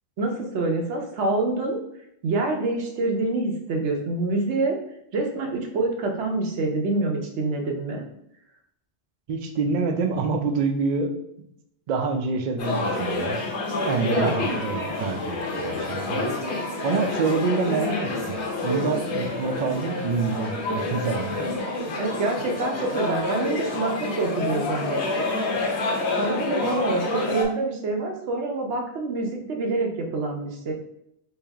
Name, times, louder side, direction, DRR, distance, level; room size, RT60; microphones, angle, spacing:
voice 1, 0.2-1.8 2.2-4.8 5.1-8.0 14.1-14.3 22.0-25.3 26.2-30.7, right 2 dB, 90° right, 2 dB, 1.0 m, -26 dB
voice 2, 9.3-11.5 11.9-13.4 13.9-21.5, right 4 dB, 55° right, 4 dB, 0.5 m, -27 dB
sound 1, 12.6-27.4, left 2 dB, 80° left, 1.1 m, -28 dB
3.3 x 2.7 x 3.4 m, 0.76 s
omnidirectional pair, 1.1 m